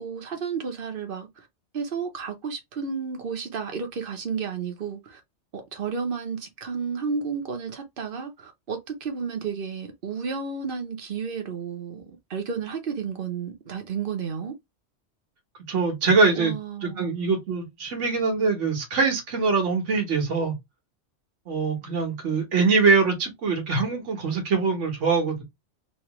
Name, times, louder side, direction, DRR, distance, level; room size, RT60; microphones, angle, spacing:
voice 1, 0.0-1.5 1.7-5.2 5.5-12.0 12.3-14.5 16.4-17.1, right 6 dB, 50° right, 1.0 m, -32 dB
voice 2, 15.7-16.5 16.8-20.6 21.5-25.4, right 4 dB, 80° right, 1.5 m, -23 dB
3.1 x 2.8 x 2.9 m
omnidirectional pair, 1.2 m